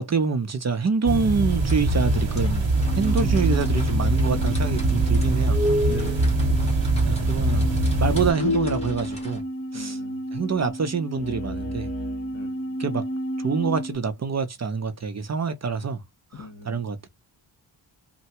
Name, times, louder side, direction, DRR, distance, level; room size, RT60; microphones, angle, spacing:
voice 1, 0.0-2.7 2.9-5.6 7.0-7.7 8.0-9.4 9.7-10.0 10.3-11.9 12.8-13.1 13.4-16.0 16.3-17.1, right 5 dB, 35° right, 0.5 m, -26 dB
sound 1, 1.0-8.3, right 2 dB, 75° right, 0.8 m, -22 dB
sound 2, 1.5-9.4, left 1 dB, 15° left, 1.3 m, -42 dB
sound 3, 2.8-14.0, equal, 35° left, 0.9 m, -31 dB
voice 2, 5.9-6.4 9.7-10.2 12.3-12.8 16.3-16.9, left 4 dB, 65° left, 1.2 m, -41 dB
3.2 x 2.1 x 2.8 m
wide cardioid pair, 170°, 46 cm